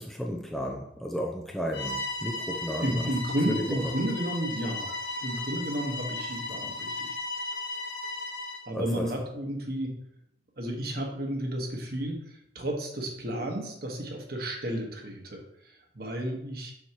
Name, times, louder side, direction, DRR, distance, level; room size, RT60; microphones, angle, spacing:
voice 1, 0.0-3.0 3.5-3.9 8.7-9.1, equal, ahead, 1 dB, 0.5 m, -33 dB
Bowed string instrument, 1.7-8.7, left 2 dB, 75° left, 1.6 m, -35 dB
voice 2, 2.8-4.9 5.2-7.2 8.7-9.9 10.6-16.7, right 1 dB, 55° right, 1 dB, 1.4 m, -32 dB
7.1 x 6.3 x 3.0 m, 0.76 s
head